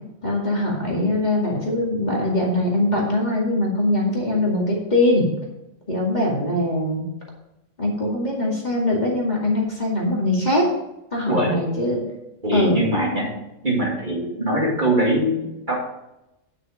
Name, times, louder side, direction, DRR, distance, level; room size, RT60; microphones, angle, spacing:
voice 1, 0.2-5.3 5.9-7.0 7.8-10.7 11.1-12.0 12.5-12.8, left 1 dB, 35° left, -3 dB, 2.4 m, -22 dB
voice 2, 11.3-11.6 12.4-13.4 13.6-15.8, right 1 dB, 35° right, -3 dB, 2.7 m, -22 dB
9.8 x 6.5 x 5.1 m, 0.91 s
omnidirectional pair, 1.3 m